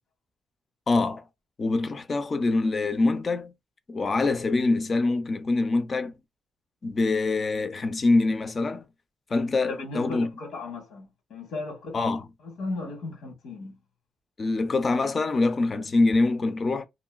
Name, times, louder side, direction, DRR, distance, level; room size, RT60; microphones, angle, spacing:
voice 1, 0.9-1.2 1.6-3.5 3.9-6.1 6.8-8.8 9.3-10.3 11.9-12.2 14.4-16.9, left 3 dB, 30° left, 0.4 m, -24 dB
voice 2, 9.7-13.8, left 2 dB, 85° left, 1.3 m, -36 dB
3.0 x 2.6 x 2.3 m
cardioid pair, 155°, 0 cm